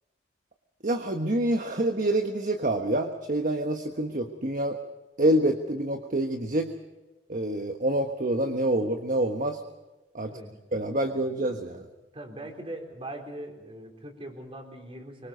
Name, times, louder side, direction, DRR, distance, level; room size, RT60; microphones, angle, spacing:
voice 1, 0.8-4.8 5.2-6.7 7.3-9.6 10.1-10.3 10.7-11.8, right 1 dB, 45° right, 5 dB, 1.3 m, -27 dB
voice 2, 10.2-10.6 12.1-15.3, right 1 dB, 30° right, 3 dB, 4.1 m, -41 dB
25.0 x 24.0 x 5.3 m, 1.1 s
head